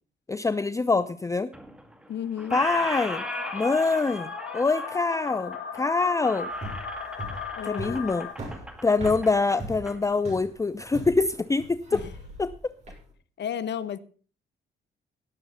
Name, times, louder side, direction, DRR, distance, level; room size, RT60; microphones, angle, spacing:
voice 1, 0.3-1.5 2.5-3.2 3.5-6.5 7.6-8.3 8.8-12.0 12.4-12.5, left 3 dB, 15° left, 0.5 m, -25 dB
Squeak, 1.5-2.1 2.4-10.0, right 1 dB, 5° right, 2.0 m, -38 dB
voice 2, 2.1-2.6 7.6-8.0 11.9-12.0 13.4-14.0, left 9 dB, 60° left, 1.1 m, -32 dB
sound 1, 2.5-8.3, left 7 dB, 80° left, 1.6 m, -37 dB
sound 2, 6.5-13.0, right 1 dB, 35° right, 6.6 m, -39 dB
17.5 x 7.0 x 5.5 m
cardioid pair, 90°, 20 cm